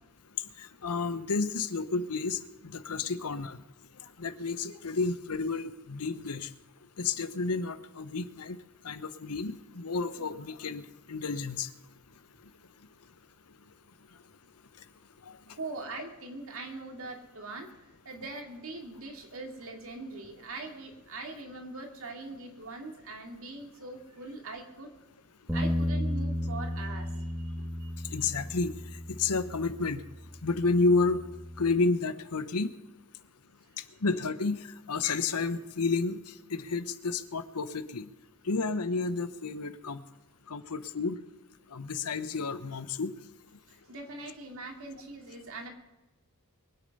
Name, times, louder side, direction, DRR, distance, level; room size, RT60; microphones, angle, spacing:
voice 1, 0.6-3.6 4.2-6.5 7.0-8.6 8.8-10.8 11.1-11.7 15.3-15.4 28.1-28.7 29.1-30.0 30.4-31.2 31.6-32.7 34.0-34.6 34.9-36.2 36.5-38.1 38.5-40.0 40.5-41.2 41.7-43.1, left 3 dB, 85° left, 13 dB, 0.9 m, -30 dB
voice 2, 15.5-17.7 18.0-24.9 25.5-27.5 27.8-27.9 43.7-45.7, right 3 dB, 65° right, 2 dB, 2.7 m, -42 dB
Bass guitar, 25.5-31.7, equal, ahead, 1.5 m, -34 dB
23.0 x 8.7 x 5.5 m, 1.0 s
head